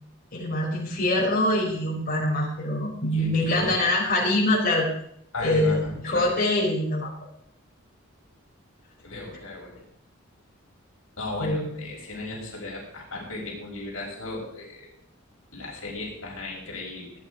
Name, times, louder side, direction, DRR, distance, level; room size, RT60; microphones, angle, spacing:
voice 1, 0.3-4.9 5.4-7.1 11.4-11.7, left 1 dB, 45° left, -5 dB, 5.1 m, -24 dB
voice 2, 3.1-3.9 5.3-6.3 9.0-9.8 11.2-14.9 15.5-17.1, left 2 dB, 75° left, -3 dB, 5.6 m, -35 dB
17.5 x 9.9 x 5.1 m, 0.69 s
head